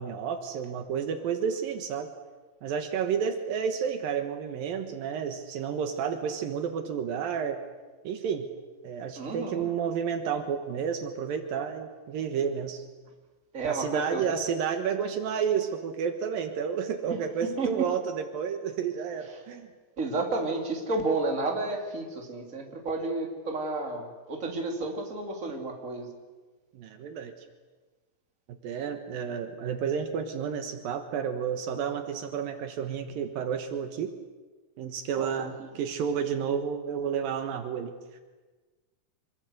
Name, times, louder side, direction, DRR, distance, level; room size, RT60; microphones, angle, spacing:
voice 1, 0.0-2.1 2.6-7.6 8.0-8.5 8.8-12.8 13.7-19.7 26.7-27.3 28.5-34.2 34.8-37.9, right 7 dB, 75° right, 7 dB, 3.0 m, -31 dB
voice 2, 9.2-9.7 13.5-14.2 17.1-17.8 20.0-26.1 35.1-35.7, right 3 dB, 20° right, 2 dB, 3.2 m, -31 dB
26.0 x 22.5 x 8.1 m, 1.3 s
omnidirectional pair, 4.3 m